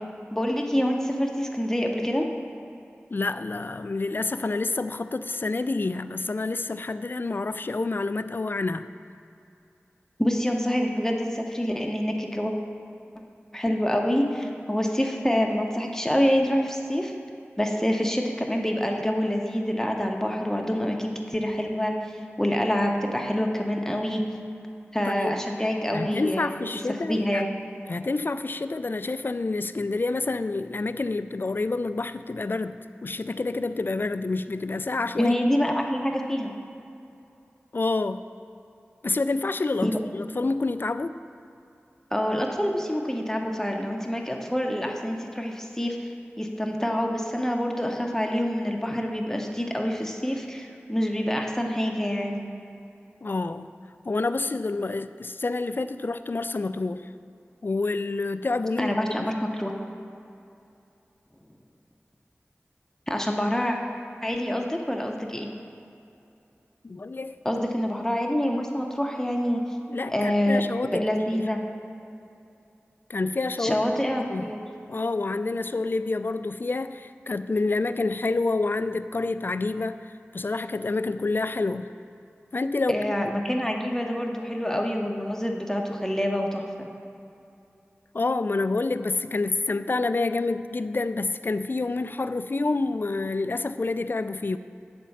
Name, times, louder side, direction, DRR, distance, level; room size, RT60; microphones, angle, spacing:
voice 1, 0.3-2.2 10.2-12.5 13.5-17.1 17.6-22.1 22.4-24.2 24.9-26.6 27.1-27.5 35.2-36.5 39.8-40.0 42.1-46.1 46.4-52.5 58.8-59.7 63.1-63.8 64.2-65.5 67.4-69.6 70.1-71.6 73.6-74.6 82.9-86.9, equal, 10° left, 1 dB, 0.9 m, -26 dB
voice 2, 3.1-8.9 25.2-25.4 25.9-27.4 27.9-35.3 37.7-38.2 39.0-41.2 53.2-53.7 54.1-57.1 57.6-58.9 59.2-59.3 66.8-67.4 69.9-71.1 71.3-71.4 73.1-73.8 74.3-74.5 74.9-80.0 80.3-81.9 82.5-83.0 88.1-94.6, left 3 dB, 50° left, 11 dB, 0.3 m, -28 dB
9.2 x 4.3 x 7.1 m, 2.6 s
wide cardioid pair, 45°, 5 cm